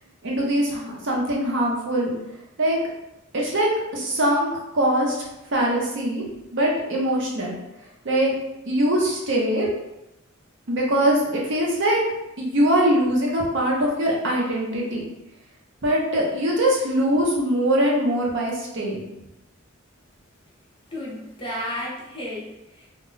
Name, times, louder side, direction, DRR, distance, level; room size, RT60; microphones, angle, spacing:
voice 1, 0.2-2.1 2.6-2.8 3.3-4.5 4.7-6.3 6.5-7.5 8.0-8.3 8.7-9.7 10.7-12.0 12.4-15.1 15.8-19.1, right 1 dB, 60° right, -2 dB, 0.7 m, -22 dB
voice 2, 20.9-22.9, left 1 dB, 25° left, -5 dB, 0.7 m, -33 dB
2.2 x 2.1 x 3.7 m, 0.90 s
head